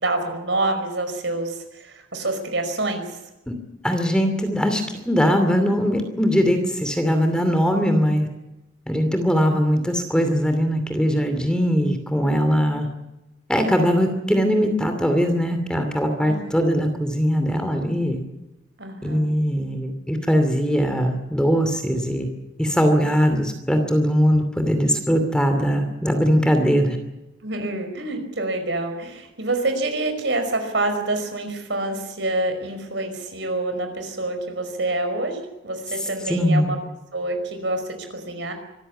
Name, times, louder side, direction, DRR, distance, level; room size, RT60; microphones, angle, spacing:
voice 1, 0.0-3.2 16.2-16.8 18.8-19.3 27.4-36.8 37.1-38.5, right 2 dB, 65° right, 7 dB, 5.2 m, -27 dB
voice 2, 3.8-8.3 8.9-12.9 13.5-18.2 19.0-22.3 22.6-27.0 36.3-36.7, equal, 5° left, 6 dB, 2.6 m, -21 dB
25.0 x 15.0 x 9.6 m, 0.97 s
head